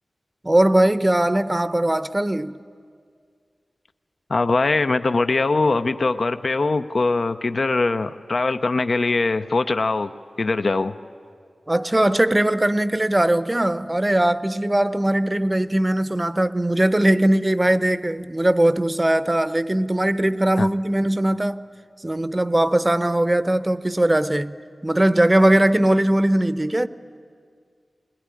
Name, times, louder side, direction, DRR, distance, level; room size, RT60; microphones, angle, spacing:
voice 1, 0.4-2.6 11.7-21.6 22.0-24.6 24.8-26.9, right 1 dB, 20° right, 0.7 m, -20 dB
voice 2, 4.3-10.1 10.4-10.9 20.6-20.7, left 3 dB, 60° left, 0.6 m, -21 dB
20.5 x 20.5 x 9.8 m
wide cardioid pair, 65°, 0 cm